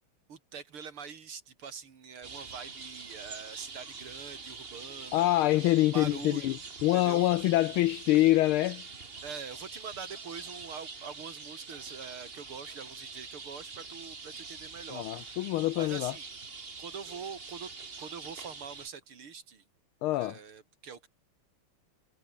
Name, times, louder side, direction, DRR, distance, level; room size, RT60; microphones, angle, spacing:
voice 1, 0.3-5.3 5.9-6.6 6.9-7.2 9.2-16.3 16.8-17.7 18.0-19.6 20.1-21.1, right 6 dB, 75° right, 3.5 m, -44 dB
sound 1, 2.2-18.9, right 4 dB, 30° right, 1.7 m, -45 dB
voice 2, 5.1-8.8 14.9-16.1 20.0-20.4, left 16 dB, 80° left, 1.4 m, -25 dB
omnidirectional pair, 2.4 m